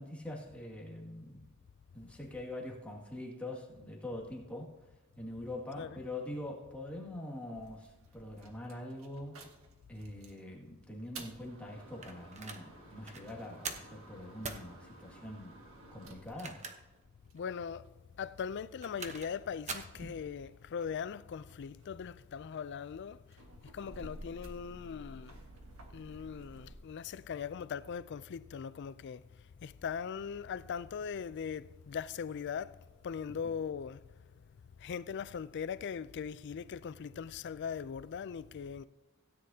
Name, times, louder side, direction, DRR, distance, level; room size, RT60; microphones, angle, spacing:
voice 1, 0.0-1.5 1.9-4.7 5.2-9.4 9.9-15.6 15.9-16.7 33.3-33.5, left 1 dB, 5° left, 2.1 m, -44 dB
sound 1, 7.5-10.4 10.9-17.7 18.4-21.0 21.3-26.7, right 1 dB, 70° right, 1.6 m, -53 dB
sound 2, 12.0-12.6 13.0-13.2 13.6-13.9 14.4-14.7 16.2-17.0 17.4-17.5 18.6-19.3 19.7-20.0, right 4 dB, 35° right, 1.0 m, -42 dB
voice 2, 17.3-17.9 18.2-23.4 23.7-25.4 25.9-34.0 34.8-38.9, left 7 dB, 55° left, 0.3 m, -40 dB
16.5 x 9.7 x 2.8 m
head